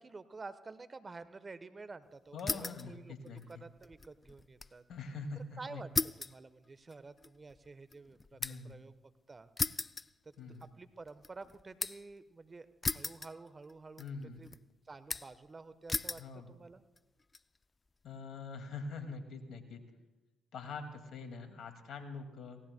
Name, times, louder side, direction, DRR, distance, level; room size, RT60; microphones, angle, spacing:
voice 1, 0.0-3.1 3.5-4.8 5.3-5.9 6.2-8.9 9.3-9.5 10.2-10.3 10.6-14.5 14.9-16.8, right 3 dB, 35° right, 13 dB, 1.0 m, -50 dB
voice 2, 2.3-3.6 4.9-5.8 8.4-8.8 10.4-10.6 14.0-14.5 16.2-16.5 18.0-19.8 20.5-22.6, left 4 dB, 65° left, 6 dB, 2.1 m, -44 dB
sound 1, 2.4-2.9 3.3-4.8 5.1-5.2 5.9-8.8 9.6-10.7 11.1-12.1 12.8-13.7 14.0-14.6 15.1-15.5 15.9-16.3 17.0-17.4, left 3 dB, 30° left, 0.4 m, -37 dB
27.5 x 18.0 x 2.2 m, 1.1 s
hypercardioid pair, 50°, 0 cm